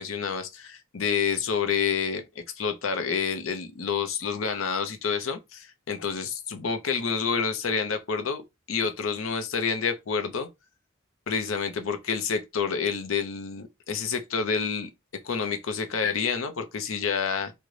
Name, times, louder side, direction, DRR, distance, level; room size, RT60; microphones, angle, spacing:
voice 1, 0.0-2.2 2.6-8.4 8.7-10.5 11.3-14.9 15.2-17.5, left 6 dB, 85° left, 0.6 m, -28 dB
3.8 x 2.1 x 3.1 m
head